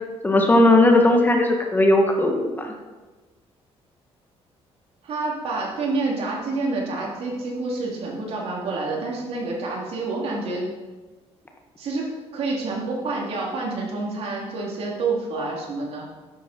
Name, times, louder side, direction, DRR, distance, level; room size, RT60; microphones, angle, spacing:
voice 1, 0.2-2.7, left 1 dB, 15° left, 2 dB, 1.6 m, -17 dB
voice 2, 5.0-10.7 11.8-16.1, right 3 dB, 65° right, -2 dB, 3.5 m, -28 dB
13.0 x 10.0 x 4.6 m, 1.3 s
cardioid pair, 135°, 11 cm